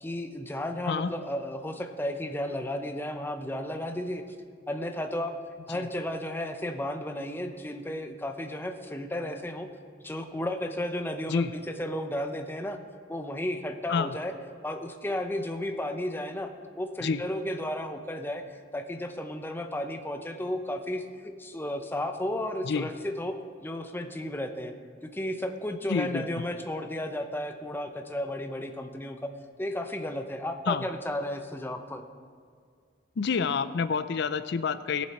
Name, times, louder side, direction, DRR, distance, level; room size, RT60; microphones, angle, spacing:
voice 1, 0.0-4.2 4.7-5.3 5.7-9.7 10.0-12.8 13.1-14.3 14.6-16.5 16.8-24.7 25.0-29.3 29.6-32.0, left 1 dB, 10° left, 6 dB, 0.7 m, -33 dB
voice 2, 25.9-26.2 30.7-30.9 33.2-35.1, left 5 dB, 60° left, 14 dB, 0.5 m, -28 dB
18.0 x 7.4 x 4.3 m, 2.1 s
head